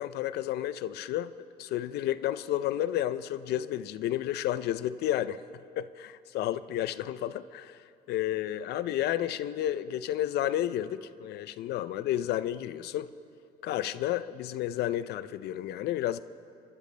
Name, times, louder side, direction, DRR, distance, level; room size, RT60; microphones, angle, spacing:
voice 1, 0.0-1.3 1.6-5.4 5.8-7.8 8.1-13.1 13.6-16.2, left 12 dB, 75° left, 15 dB, 0.5 m, -31 dB
30.0 x 12.0 x 3.3 m, 2.5 s
cardioid pair, 110°, 17 cm